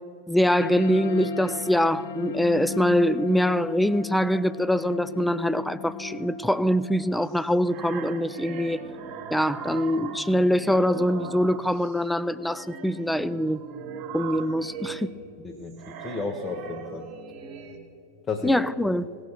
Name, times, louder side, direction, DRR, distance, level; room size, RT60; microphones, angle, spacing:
voice 1, 0.3-8.8 9.3-13.6 14.1-15.1 18.4-19.1, equal, ahead, 16 dB, 0.3 m, -24 dB
sound 1, 0.6-11.6, left 4 dB, 55° left, 0.6 m, -37 dB
sound 2, 7.2-12.0 12.5-17.8, right 5 dB, 35° right, 1.3 m, -39 dB
voice 2, 15.4-17.1 18.3-18.7, left 4 dB, 25° left, 2 dB, 0.8 m, -33 dB
17.5 x 6.4 x 6.3 m, 2.6 s
figure-of-eight pair, 90°, 0 cm